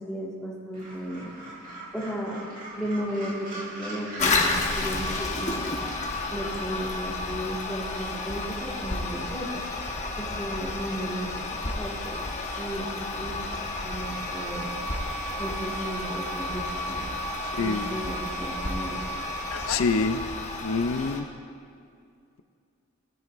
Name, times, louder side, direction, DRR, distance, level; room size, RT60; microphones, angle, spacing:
voice 1, 0.1-1.3 1.9-2.4 2.7-5.8 6.3-9.6 10.2-11.3 11.7-12.2 12.5-13.4 13.8-14.7 15.4-17.1 17.6-19.0, equal, 5° left, -5 dB, 1.8 m, -34 dB
Gull seagull, 0.7-6.6, right 1 dB, 40° right, 2.1 m, -41 dB
Toilet flush, 4.2-21.2, left 3 dB, 35° left, 1.1 m, -31 dB
High tapping and sustain., 13.2-19.7, right 6 dB, 85° right, 0.6 m, -39 dB
voice 2, 17.4-18.0 19.5-20.2 20.6-21.3, left 4 dB, 75° left, 10 dB, 0.5 m, -26 dB
18.0 x 9.1 x 2.6 m, 2.4 s
head